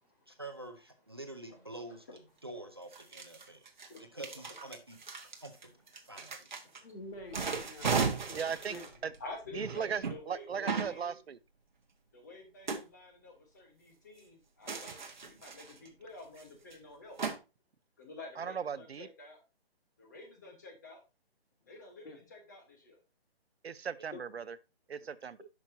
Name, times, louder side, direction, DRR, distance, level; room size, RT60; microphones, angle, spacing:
voice 1, 0.3-2.0 2.4-3.6 4.1-5.0 5.4-5.7 6.0-6.5, right 1 dB, 25° right, 0.6 m, -46 dB
sound 1, 2.2-2.3 2.9-6.8 7.2-10.2 10.7-11.0 12.7-12.8 14.7-15.9 16.4-16.5 16.7-16.8 17.2-17.4, right 5 dB, 50° right, 1.5 m, -36 dB
voice 2, 3.4-4.2 4.5-4.6 5.3-5.4 6.0-6.1 6.5-6.9 9.2-11.2 12.1-17.2 18.0-19.4 20.0-21.0 21.7-23.0, left 2 dB, 20° left, 1.2 m, -50 dB
voice 3, 6.8-7.9 8.3-8.9 22.0-22.2 24.1-24.2, left 1 dB, 70° left, 3.2 m, -47 dB
voice 4, 8.3-8.8 9.0-9.1 9.5-11.4 18.4-19.1 23.6-24.6 24.9-25.4, right 7 dB, 90° right, 0.8 m, -37 dB
10.5 x 5.9 x 2.7 m
hypercardioid pair, 180°, 31 cm